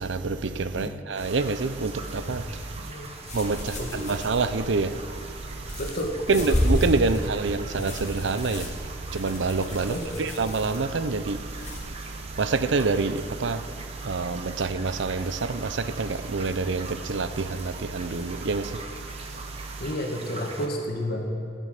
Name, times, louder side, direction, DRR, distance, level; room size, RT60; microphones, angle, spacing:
voice 1, 0.0-2.9 3.3-5.8 6.3-19.8, right 3 dB, 70° right, 0.6 m, -28 dB
sound 1, 1.1-20.7, right 3 dB, 35° right, 1.2 m, -42 dB
sound 2, 2.0-11.8, equal, 40° left, 2.9 m, -33 dB
voice 2, 2.8-3.1 3.8-4.2 5.8-6.6 9.9-10.3 19.8-21.3, equal, 55° left, 2.0 m, -31 dB
14.5 x 10.0 x 6.6 m
head